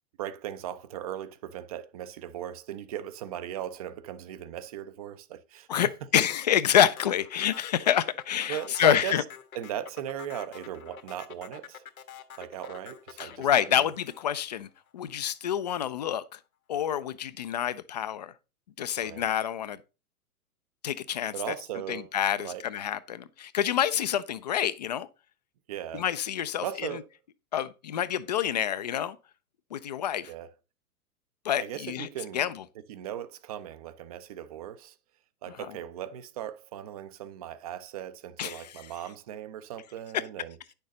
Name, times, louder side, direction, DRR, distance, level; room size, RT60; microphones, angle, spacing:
voice 1, 0.2-5.9 8.5-9.2 9.5-11.8 12.4-13.9 19.0-19.3 21.3-22.1 22.4-22.6 25.7-26.0 26.6-27.1 30.3-30.5 31.6-32.4 32.9-34.9 35.4-40.6, right 10 dB, 25° right, 0.5 m, -38 dB
voice 2, 5.7-9.2 13.2-16.4 16.7-18.3 18.8-19.8 20.8-21.5 21.9-25.1 25.9-26.7 27.5-29.2 29.7-30.3 31.4-32.1 32.3-32.6 38.4-38.7, left 10 dB, 30° left, 0.4 m, -27 dB
sound 1, 6.7-15.1, left 8 dB, 65° left, 1.5 m, -46 dB
9.9 x 6.7 x 4.0 m
figure-of-eight pair, 110°, 45 cm